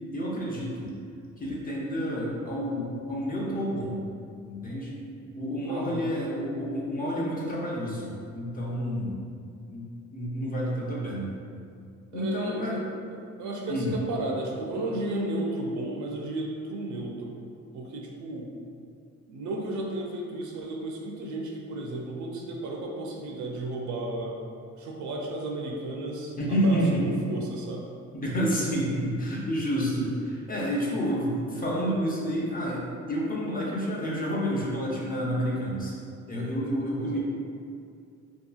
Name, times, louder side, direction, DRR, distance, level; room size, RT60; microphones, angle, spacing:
voice 1, 0.1-0.9 1.4-4.0 4.4-5.0 5.4-9.2 9.7-9.8 10.1-11.3 12.1-12.8 13.7-13.9 26.4-27.1 28.1-35.9 36.3-37.2, equal, 30° left, -5 dB, 0.6 m, -29 dB
voice 2, 5.6-6.1 12.1-12.9 13.4-17.4 17.7-18.5 19.3-24.4 24.7-26.3 26.6-26.8 27.3-27.9 37.0-37.2, right 2 dB, 70° right, 0 dB, 0.5 m, -33 dB
2.8 x 2.3 x 2.3 m, 2.4 s
cardioid pair, 90°, 30 cm